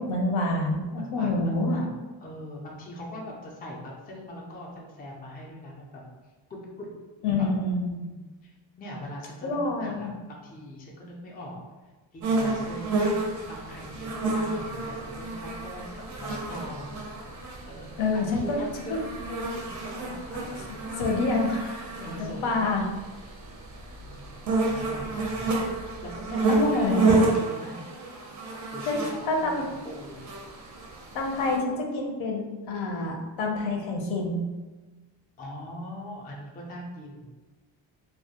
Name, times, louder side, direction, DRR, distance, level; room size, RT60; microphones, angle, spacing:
voice 1, 0.0-1.8 7.2-7.9 9.4-10.1 18.0-18.6 18.9-19.0 21.0-21.9 22.2-22.9 26.5-27.2 28.9-29.0 29.3-29.6 31.1-34.4, left 2 dB, 75° left, 0 dB, 0.7 m, -27 dB
voice 2, 1.0-1.9 2.2-6.0 6.5-6.9 7.3-7.5 8.0-8.5 8.8-11.6 12.1-16.9 17.6-20.6 22.0-22.8 24.0-24.2 24.6-27.8 28.7-30.3 35.4-37.3, equal, 20° left, -2 dB, 0.4 m, -41 dB
sound 1, 12.2-31.6, right 2 dB, 40° right, 0.4 m, -30 dB
2.3 x 2.1 x 2.7 m, 1.3 s
cardioid pair, 125°, 47 cm